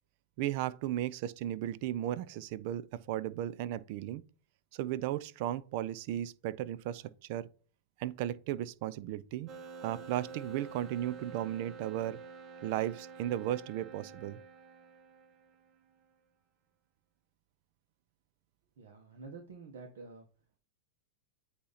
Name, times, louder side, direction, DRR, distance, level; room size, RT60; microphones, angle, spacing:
voice 1, 0.4-4.2 4.7-7.5 8.0-9.5 9.8-12.2 12.6-14.4, right 12 dB, 55° right, 0.4 m, -35 dB
sound 1, 9.5-15.9, right 4 dB, 35° right, 0.8 m, -49 dB
voice 2, 18.8-20.3, right 4 dB, 75° right, 1.3 m, -48 dB
8.4 x 2.9 x 4.0 m
hypercardioid pair, 115°, 0 cm